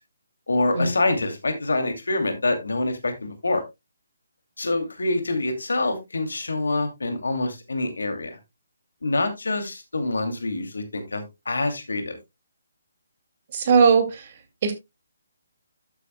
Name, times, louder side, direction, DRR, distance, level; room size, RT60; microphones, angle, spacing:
voice 1, 0.5-3.6 4.6-8.3 9.0-12.2, left 2 dB, 65° left, 7 dB, 2.5 m, -26 dB
voice 2, 13.5-14.2 14.6-14.7, right 5 dB, 40° right, 7 dB, 2.3 m, -18 dB
12.5 x 8.2 x 2.2 m, 0.22 s
figure-of-eight pair, 140°, 0 cm